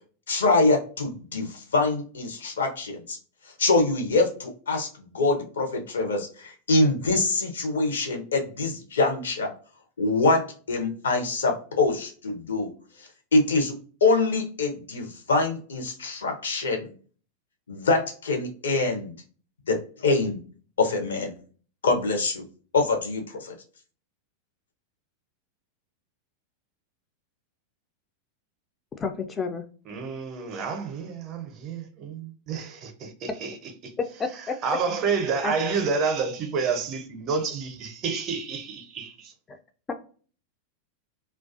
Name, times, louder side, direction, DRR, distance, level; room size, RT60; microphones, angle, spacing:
voice 1, 0.3-3.2 3.6-4.9 5.1-9.5 10.0-12.7 13.3-13.7 14.0-16.8 17.7-19.1 19.7-20.4 20.8-21.4 21.8-22.4 22.7-23.5, left 3 dB, 65° left, 0.6 m, -24 dB
voice 2, 29.0-29.7 34.2-34.6 35.4-35.5 39.5-39.6 39.9-40.0, left 4 dB, 20° left, 0.3 m, -30 dB
voice 3, 29.9-33.6 33.8-33.9 34.6-39.3, right 5 dB, 35° right, 0.5 m, -29 dB
2.3 x 2.2 x 2.5 m
figure-of-eight pair, 90°, 0 cm